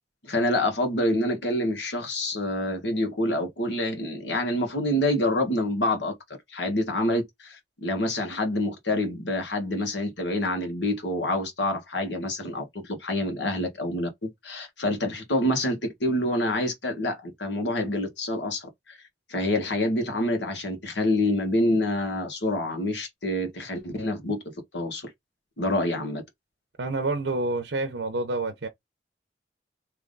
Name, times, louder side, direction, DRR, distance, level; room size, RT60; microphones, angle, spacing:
voice 1, 0.2-6.1 6.5-19.0 19.3-24.4 24.7-25.1 25.6-26.2, left 1 dB, 90° left, 1.5 m, -27 dB
voice 2, 26.8-28.7, right 2 dB, 85° right, 0.7 m, -28 dB
3.5 x 2.9 x 3.9 m
head